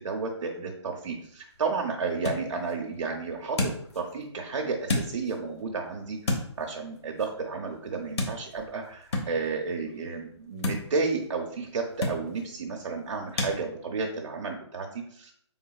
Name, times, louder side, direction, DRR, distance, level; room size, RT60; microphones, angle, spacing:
voice 1, 0.0-15.3, right 4 dB, 85° right, 1 dB, 0.6 m, -32 dB
sound 1, 1.1-13.6, left 2 dB, 60° left, 1.0 m, -36 dB
4.0 x 3.5 x 2.3 m, 0.65 s
hypercardioid pair, 165°, 15 cm